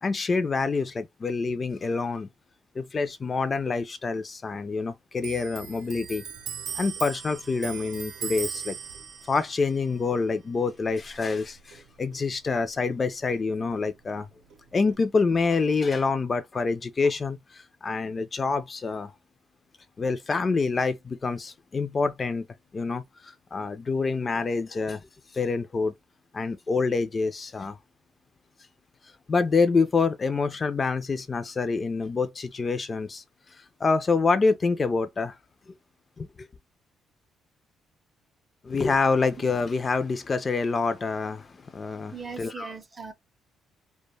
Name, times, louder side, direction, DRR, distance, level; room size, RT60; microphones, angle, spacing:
voice 1, 0.0-2.3 2.8-6.2 6.8-8.8 9.3-14.3 14.7-19.1 20.0-22.4 22.7-25.0 25.3-25.9 26.3-27.8 29.3-33.2 33.8-35.4 35.7-35.8 36.2-36.5 38.6-42.7, left 4 dB, 35° left, 0.3 m, -26 dB
Clock, 5.2-12.2 12.5-13.8 14.1-14.9, right 8 dB, 85° right, 0.6 m, -39 dB
voice 2, 42.1-43.1, right 5 dB, 30° right, 0.5 m, -39 dB
2.1 x 2.0 x 3.2 m
cardioid pair, 90°, 0 cm